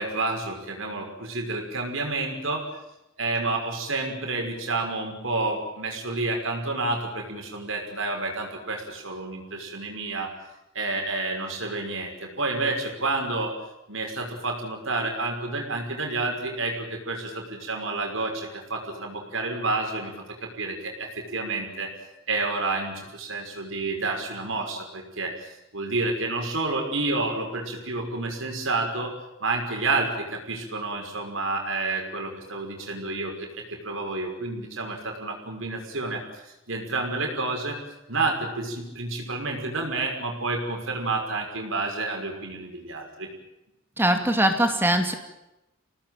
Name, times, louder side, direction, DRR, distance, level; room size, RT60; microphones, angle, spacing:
voice 1, 0.0-2.6 3.2-10.3 10.7-13.5 13.9-21.9 22.3-29.1 29.4-37.8 38.1-43.3, right 3 dB, 70° right, 2 dB, 5.9 m, -29 dB
voice 2, 44.0-45.1, right 1 dB, 10° right, 5 dB, 2.6 m, -21 dB
28.0 x 18.5 x 9.2 m, 0.93 s
head